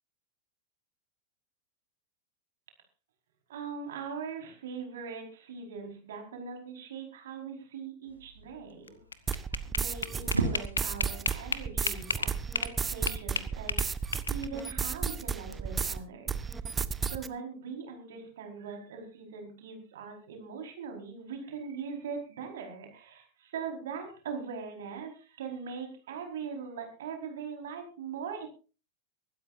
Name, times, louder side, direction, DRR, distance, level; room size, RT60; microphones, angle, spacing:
voice 1, 3.5-9.0 9.3-12.3 12.6-28.5, right 6 dB, 60° right, 3 dB, 4.9 m, -41 dB
sound 1, 8.1-15.6, right 3 dB, 80° right, 2.4 m, -40 dB
sound 2, 8.9-12.8 13.1-14.6, left 5 dB, 75° left, 1.1 m, -33 dB
sound 3, 9.3-16.0 16.3-17.3, right 5 dB, 15° right, 0.9 m, -33 dB
24.0 x 13.0 x 2.7 m, 0.34 s
figure-of-eight pair, 90°, 0 cm